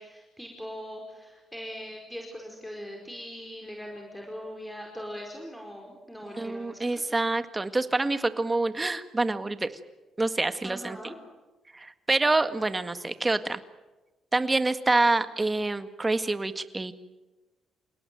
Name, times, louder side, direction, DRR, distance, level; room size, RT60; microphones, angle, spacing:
voice 1, 0.0-7.0 10.6-11.1, equal, 5° left, 1 dB, 4.9 m, -41 dB
voice 2, 6.4-9.7 10.2-11.0 11.7-13.6 14.3-16.9, right 2 dB, 20° right, 10 dB, 1.8 m, -26 dB
29.0 x 18.0 x 9.3 m, 1.1 s
cardioid pair, 90°, 0 cm